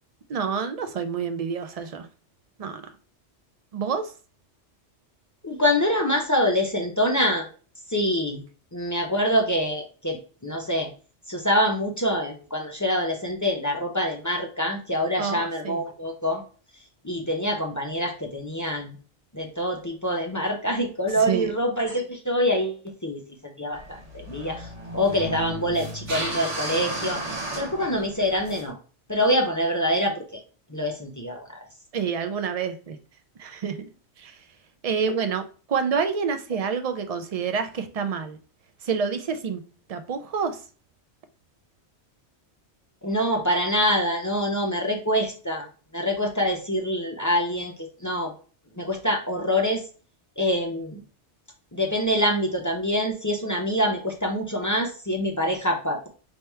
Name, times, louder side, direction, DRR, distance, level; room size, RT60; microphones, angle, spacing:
voice 1, 0.3-2.1 2.6-2.8 3.7-4.1 15.2-15.8 21.1-21.5 31.9-33.0 33.4-33.9 34.2-34.4 34.8-38.4 38.8-39.6 39.9-40.6, right 6 dB, 60° right, 0.3 m, -28 dB
voice 2, 5.4-7.5 7.9-8.4 8.7-10.9 11.3-16.4 17.0-19.0 19.3-24.7 24.9-27.2 27.5-28.8 29.1-30.4 30.7-31.6 43.0-45.7 45.9-47.7 48.0-48.3 48.8-49.8 50.4-51.0 51.7-56.1, equal, 25° left, 0.5 m, -25 dB
sound 1, 23.7-28.7, right 1 dB, 90° right, 1.4 m, -34 dB
3.3 x 2.8 x 4.4 m
omnidirectional pair, 1.2 m